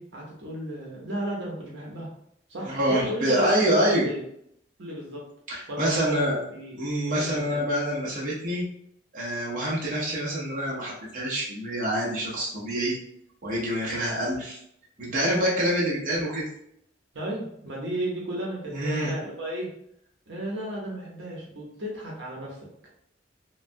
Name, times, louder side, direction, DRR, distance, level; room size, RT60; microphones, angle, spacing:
voice 1, 0.0-2.1 2.5-4.2 4.8-5.2 5.7-6.9 7.1-7.7 17.1-19.7 20.3-22.6, right 1 dB, 75° right, -2 dB, 0.8 m, -34 dB
voice 2, 2.7-4.1 5.5-6.4 6.8-8.6 9.1-13.0 13.4-14.6 15.0-16.4 18.7-19.1, equal, 45° right, -5 dB, 0.8 m, -26 dB
3.2 x 2.2 x 2.6 m, 0.73 s
head